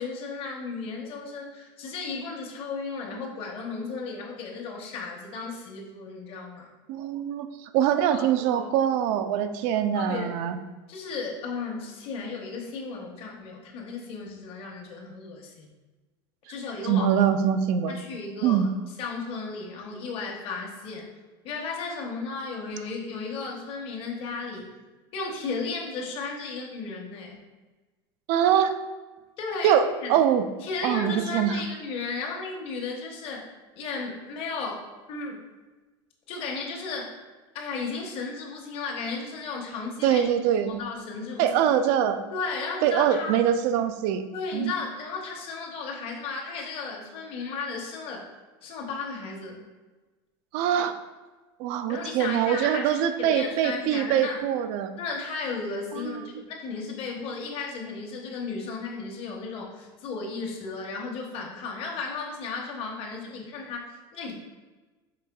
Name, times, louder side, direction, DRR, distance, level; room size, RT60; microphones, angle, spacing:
voice 1, 0.0-6.7 8.1-8.7 9.9-10.4 10.9-15.7 16.5-17.1 17.9-18.7 19.0-21.1 21.4-24.7 25.1-27.4 29.4-30.1 30.6-33.5 33.8-35.3 36.3-37.2 37.5-40.2 40.6-41.7 42.3-43.3 44.3-48.3 48.6-49.6 51.9-54.4 55.0-64.3, left 4 dB, 50° left, -1 dB, 0.9 m, -34 dB
voice 2, 6.9-10.6 16.9-17.9 18.4-18.7 28.3-28.7 29.6-29.8 30.1-30.4 30.8-31.6 40.0-40.8 41.4-42.2 42.8-44.3 44.5-44.7 50.5-51.0 51.6-54.9 55.9-56.4, right 9 dB, 60° right, 10 dB, 0.4 m, -23 dB
4.9 x 3.3 x 2.2 m, 1.2 s
supercardioid pair, 115°, 13 cm